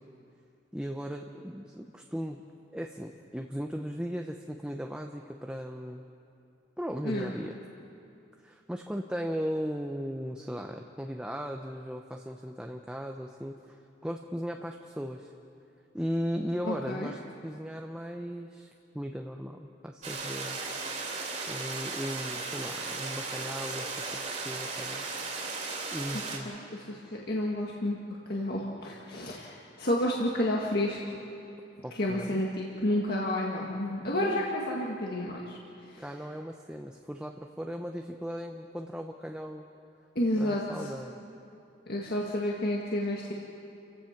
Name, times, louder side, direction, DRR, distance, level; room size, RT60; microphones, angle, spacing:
voice 1, 0.7-2.4 2.7-6.0 6.8-7.5 8.4-13.8 14.0-15.3 15.9-20.6 21.1-21.2 21.5-24.2 24.4-25.1 25.9-26.5 31.8-32.4 34.2-34.4 36.0-39.6 40.4-41.2, equal, 5° right, 2 dB, 0.7 m, -37 dB
voice 2, 16.6-17.1 26.1-28.0 28.3-31.2 32.0-35.6 35.9-36.0 40.2-40.9 41.9-43.3, left 1 dB, 55° left, -3 dB, 1.8 m, -31 dB
sound 1, 20.0-26.4, right 3 dB, 40° right, 3.2 m, -36 dB
29.5 x 16.0 x 5.9 m, 2.7 s
head